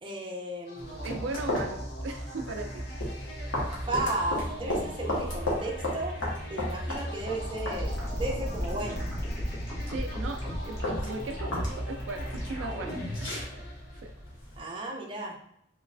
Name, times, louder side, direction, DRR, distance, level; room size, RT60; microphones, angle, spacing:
voice 1, 0.0-1.0 3.8-6.1 6.5-9.1 14.6-15.4, right 2 dB, 25° right, -1 dB, 0.6 m, -34 dB
sound 1, 0.7-14.3, equal, 50° left, 0.7 m, -38 dB
sound 2, 0.8-14.6, left 1 dB, 80° left, 1.2 m, -37 dB
voice 2, 1.0-2.8 9.9-13.5 13.9-14.1, right 2 dB, 70° right, 4 dB, 0.4 m, -38 dB
sound 3, 7.7-13.3, equal, 15° left, 0.9 m, -36 dB
3.0 x 3.0 x 2.5 m, 0.72 s
head